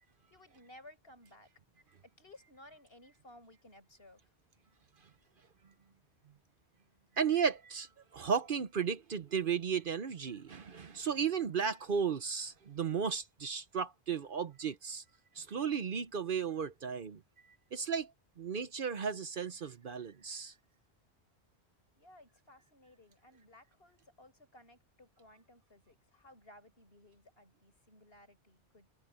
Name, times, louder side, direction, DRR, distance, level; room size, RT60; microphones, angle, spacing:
voice 1, 0.3-1.5 2.0-4.3 22.0-28.9, left 1 dB, 60° left, 7.0 m, -58 dB
voice 2, 7.2-15.0 15.4-17.2 17.7-18.1 18.4-20.5, right 6 dB, 55° right, 0.9 m, -34 dB
omnidirectional pair, 1.1 m